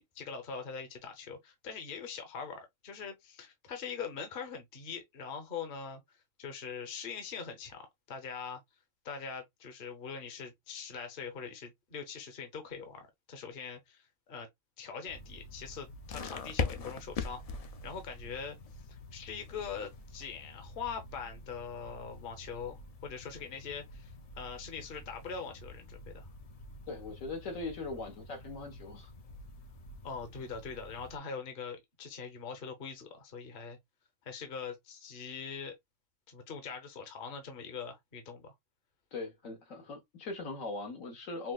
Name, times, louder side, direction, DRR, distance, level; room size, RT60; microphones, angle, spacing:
voice 1, 0.1-8.6 9.0-14.5 14.8-18.6 18.9-24.1 24.4-26.3 30.0-33.8 34.2-35.7 36.3-38.5, left 6 dB, 45° left, 1.0 m, -42 dB
sound 1, 15.1-31.2, left 4 dB, 65° left, 0.3 m, -44 dB
voice 2, 26.9-29.1 39.1-41.5, left 3 dB, 80° left, 1.6 m, -40 dB
5.7 x 2.1 x 2.3 m
omnidirectional pair, 1.3 m